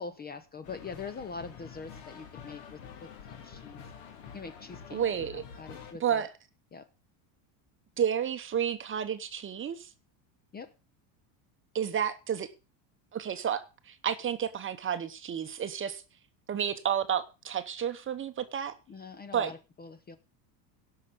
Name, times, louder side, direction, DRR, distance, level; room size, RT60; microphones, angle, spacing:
voice 1, 0.0-3.9 4.3-5.0 5.3-6.3 6.7-6.9 10.5-10.7 18.9-20.2, left 4 dB, 20° left, 0.7 m, -43 dB
sound 1, 0.6-5.9, left 7 dB, 65° left, 2.7 m, -47 dB
voice 2, 4.9-5.4 6.0-6.3 8.0-9.9 11.7-12.5 13.1-16.0 16.5-18.8 19.3-19.5, right 8 dB, 25° right, 0.9 m, -31 dB
17.5 x 5.8 x 5.1 m
supercardioid pair, 125°, 49 cm